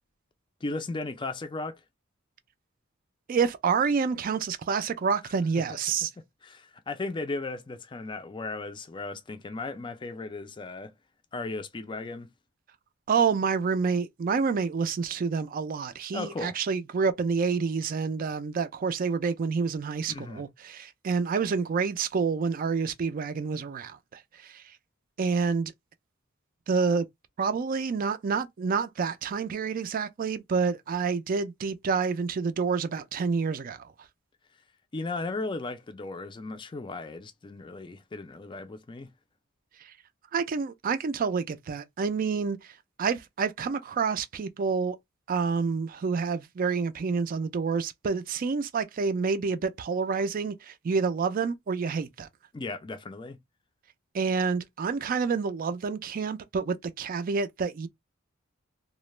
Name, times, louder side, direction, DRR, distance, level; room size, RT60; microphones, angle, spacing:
voice 1, 0.6-1.8 5.6-5.8 6.4-10.9 11.3-12.3 16.1-16.6 20.1-20.4 34.9-39.1 52.5-53.4, left 3 dB, 25° left, 0.4 m, -36 dB
voice 2, 3.3-6.1 13.1-24.6 25.2-25.7 26.7-27.1 27.4-33.9 39.8-39.9 40.3-45.0 45.3-52.3 54.1-57.9, right 5 dB, 45° right, 0.3 m, -28 dB
2.3 x 2.1 x 3.0 m
head